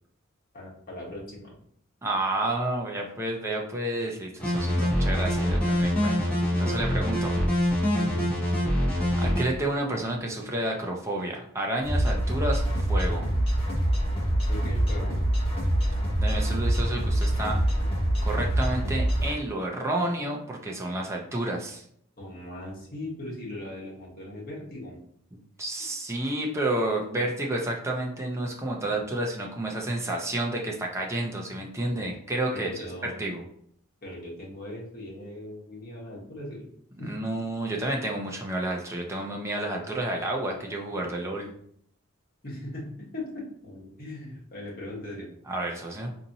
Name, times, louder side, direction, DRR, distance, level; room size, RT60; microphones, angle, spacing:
voice 1, 0.5-1.5 7.9-8.3 12.9-13.1 14.5-15.1 22.2-25.0 32.5-33.2 34.0-36.7 37.0-37.4 42.4-45.3, left 1 dB, 45° left, -4 dB, 1.2 m, -39 dB
voice 2, 2.0-6.3 6.6-7.3 9.2-13.2 16.2-17.6 18.2-21.8 25.6-33.4 37.0-41.5 45.5-46.1, right 1 dB, 15° right, 0 dB, 0.6 m, -30 dB
sound 1, 4.4-9.4, equal, 5° left, 1.2 m, -25 dB
sound 2, 11.8-19.3, right 1 dB, 25° left, 0.9 m, -25 dB
4.1 x 2.7 x 2.7 m, 0.65 s
head